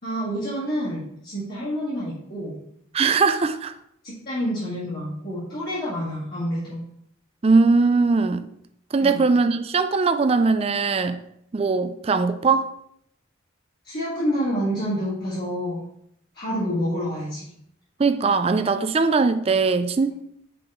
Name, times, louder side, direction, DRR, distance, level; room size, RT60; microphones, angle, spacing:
voice 1, 0.0-2.5 4.0-6.8 9.0-9.2 13.8-15.8 16.3-17.5, equal, 50° left, 2.2 m, -28 dB
voice 2, 2.9-3.7 7.4-8.4 8.9-11.2 11.5-12.7 18.0-20.1, right 4 dB, 30° right, 0.3 m, -20 dB
6.0 x 5.0 x 3.6 m
head